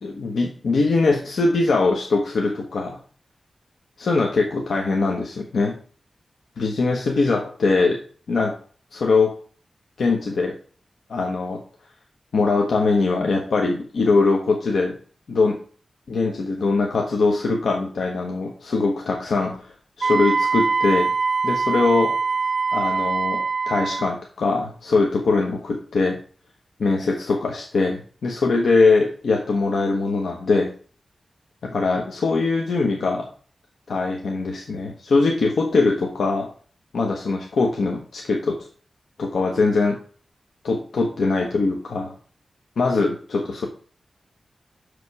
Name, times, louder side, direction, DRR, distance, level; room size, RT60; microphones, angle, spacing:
voice 1, 0.0-3.0 4.0-5.7 6.6-8.0 8.3-8.5 8.9-9.3 10.0-10.5 11.1-11.6 12.3-14.9 15.3-15.6 16.1-19.7 20.0-21.1 21.4-22.1 22.7-26.2 26.8-30.7 31.6-33.3 33.9-36.5 36.9-38.6 39.2-40.0 40.6-42.1 42.8-43.7, left 3 dB, 85° left, 1 dB, 1.1 m, -22 dB
Wind instrument woodwind instrument, 20.0-24.1, right 4 dB, 45° right, 0.5 m, -23 dB
6.5 x 5.1 x 4.8 m, 0.42 s
wide cardioid pair, 160°, 0 cm